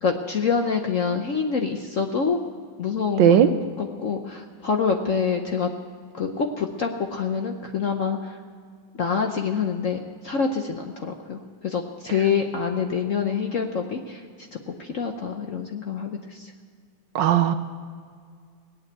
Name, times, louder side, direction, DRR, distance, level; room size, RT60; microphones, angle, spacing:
voice 1, 0.0-2.4 2.8-5.7 6.2-8.4 8.9-16.5, left 6 dB, 55° left, 4 dB, 0.9 m, -26 dB
voice 2, 3.2-3.5 17.1-17.5, right 10 dB, 70° right, 10 dB, 1.3 m, -16 dB
18.5 x 8.8 x 8.0 m, 2.1 s
omnidirectional pair, 2.2 m